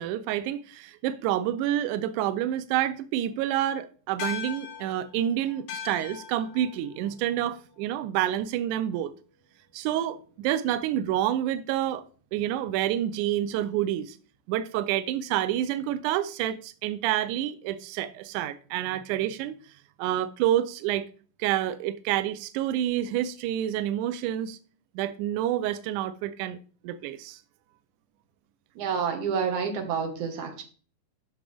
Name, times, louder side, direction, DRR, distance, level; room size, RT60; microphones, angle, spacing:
voice 1, 0.0-9.1 9.7-12.0 12.3-14.2 14.5-19.6 20.0-21.1 21.4-24.6 25.0-26.6 26.8-27.4, right 12 dB, 85° right, 1.8 m, -28 dB
sound 1, 4.2-8.9, left 8 dB, 75° left, 2.6 m, -41 dB
voice 2, 28.8-30.6, right 6 dB, 65° right, 2.7 m, -29 dB
10.5 x 6.4 x 3.4 m
omnidirectional pair, 4.1 m